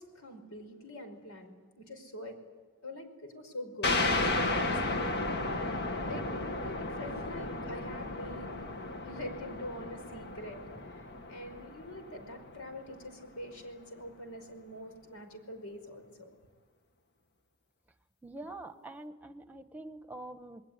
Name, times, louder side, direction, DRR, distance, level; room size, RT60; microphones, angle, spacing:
voice 1, 0.0-2.4 2.8-5.0 6.1-8.7 9.0-10.6 10.9-16.4, left 1 dB, 75° left, 6 dB, 5.3 m, -45 dB
sound 1, 3.8-13.0, left 2 dB, 50° left, 1.9 m, -34 dB
voice 2, 18.2-20.6, right 2 dB, 10° right, 9 dB, 1.3 m, -45 dB
27.5 x 21.5 x 9.7 m, 1.5 s
head